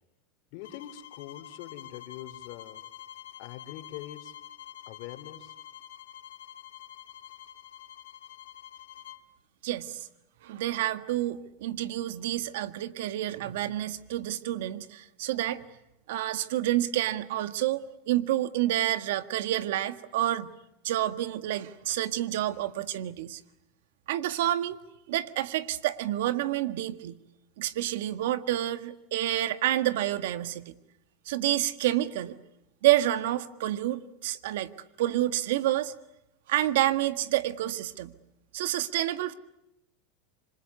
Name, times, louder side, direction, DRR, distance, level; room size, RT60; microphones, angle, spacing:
voice 1, 0.5-2.8 3.4-4.3 4.9-5.5, left 13 dB, 65° left, 3.0 m, -43 dB
sound 1, 0.6-9.3, left 12 dB, 90° left, 1.8 m, -47 dB
voice 2, 9.6-10.1 10.4-15.6 16.1-20.5 20.8-23.4 24.1-24.8 25.1-27.2 27.6-30.7 31.2-32.4 32.8-34.7 35.0-35.9 36.5-38.1 38.5-39.3, right 14 dB, 80° right, 1.6 m, -28 dB
27.0 x 26.0 x 8.2 m
supercardioid pair, 120°, 0 cm